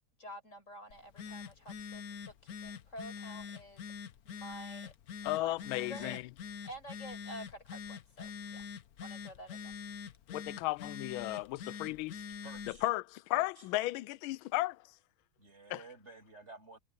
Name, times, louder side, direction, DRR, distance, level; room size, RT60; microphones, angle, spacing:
voice 1, 0.2-3.8 4.2-4.9 5.3-6.2 6.6-8.7 9.0-9.7, equal, 35° left, 6.0 m, -49 dB
Telephone, 0.9-12.8, left 6 dB, 55° left, 1.2 m, -45 dB
voice 2, 5.2-6.2 10.3-12.2 12.8-14.8 15.7-15.8, left 18 dB, 80° left, 1.3 m, -34 dB
voice 3, 12.4-12.9 13.3-13.6 15.4-16.8, right 3 dB, 30° right, 7.7 m, -52 dB
omnidirectional pair, 2.3 m